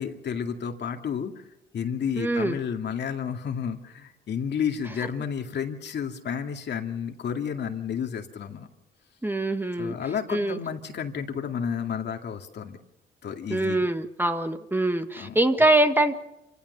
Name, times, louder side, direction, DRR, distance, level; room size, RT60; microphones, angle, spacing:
voice 1, 0.0-1.4 1.7-8.7 9.8-12.8 13.2-13.9 15.2-15.4, left 7 dB, 60° left, 4 dB, 2.3 m, -31 dB
voice 2, 2.2-2.6 9.2-9.9 10.3-10.6 13.5-16.1, right 1 dB, 10° right, 7 dB, 1.5 m, -23 dB
27.0 x 16.0 x 6.8 m, 0.91 s
cardioid pair, 90°, 20 cm